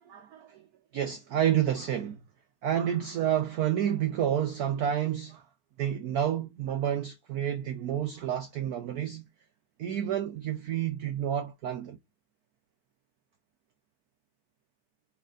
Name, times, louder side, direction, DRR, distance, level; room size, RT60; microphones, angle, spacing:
voice 1, 0.1-0.6 0.9-2.2 2.6-5.5 5.8-9.2 9.8-12.0, right 10 dB, 85° right, 0.8 m, -29 dB
4.2 x 3.4 x 2.4 m
omnidirectional pair, 2.3 m